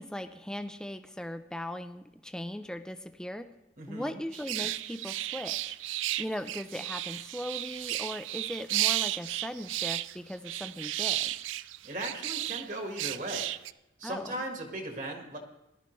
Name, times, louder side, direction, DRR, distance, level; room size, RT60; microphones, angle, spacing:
voice 1, 0.0-3.5 3.9-11.3 14.0-14.4, equal, 5° left, 8 dB, 0.4 m, -39 dB
voice 2, 3.8-4.2 11.8-13.5 14.0-15.4, right 1 dB, 45° right, 3 dB, 1.5 m, -37 dB
sound 1, 4.3-12.7 13.0-13.7, right 15 dB, 90° right, 0.3 m, -33 dB
18.5 x 12.0 x 3.1 m, 0.90 s
head